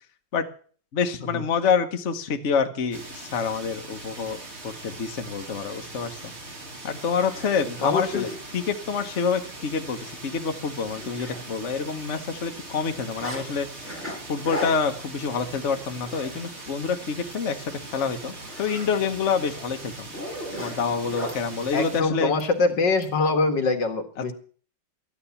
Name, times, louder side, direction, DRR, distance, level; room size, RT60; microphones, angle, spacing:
voice 1, 0.9-4.4 4.6-6.3 6.8-13.7 14.3-17.6 17.9-20.1 20.6-22.3, left 6 dB, 45° left, 6 dB, 1.3 m, -27 dB
sound 1, 2.9-22.0, right 2 dB, 35° right, 2.4 m, -41 dB
Zipper (clothing), 6.6-6.7 7.1-8.4 9.0-9.1 9.5-9.6 10.0-10.1 10.4-11.8 12.0-13.4 13.8-16.8 17.1-17.4 17.8-21.4 22.4-23.1, equal, 5° left, 5.0 m, -38 dB
voice 2, 7.8-8.3 21.7-24.3, left 3 dB, 70° left, 7 dB, 2.3 m, -23 dB
13.0 x 10.0 x 7.0 m, 0.43 s
omnidirectional pair, 2.0 m